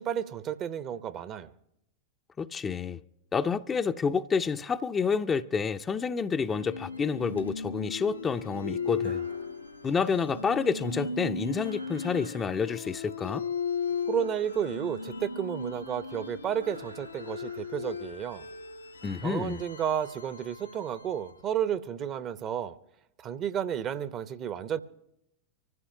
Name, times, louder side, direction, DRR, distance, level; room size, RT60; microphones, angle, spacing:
voice 1, 0.0-1.5 14.1-18.5 19.2-22.8 23.2-24.8, right 9 dB, 30° right, 0.7 m, -32 dB
voice 2, 2.4-3.0 3.3-9.2 9.8-13.5 19.0-19.6, left 5 dB, 20° left, 0.5 m, -29 dB
sound 1, 6.4-21.5, left 5 dB, 80° left, 0.6 m, -37 dB
sound 2, 8.2-20.9, right 3 dB, 85° right, 7.6 m, -54 dB
24.5 x 15.5 x 2.7 m
figure-of-eight pair, 90°, 0 cm